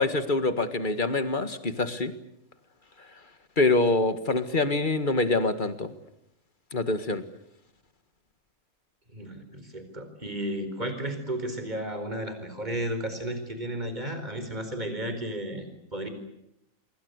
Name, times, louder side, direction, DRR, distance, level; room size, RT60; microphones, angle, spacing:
voice 1, 0.0-2.1 3.6-5.9 6.7-7.2, left 2 dB, 35° left, 10 dB, 1.9 m, -25 dB
voice 2, 9.1-16.1, right 1 dB, 30° right, 8 dB, 4.6 m, -33 dB
27.0 x 23.0 x 8.2 m, 0.80 s
omnidirectional pair, 1.4 m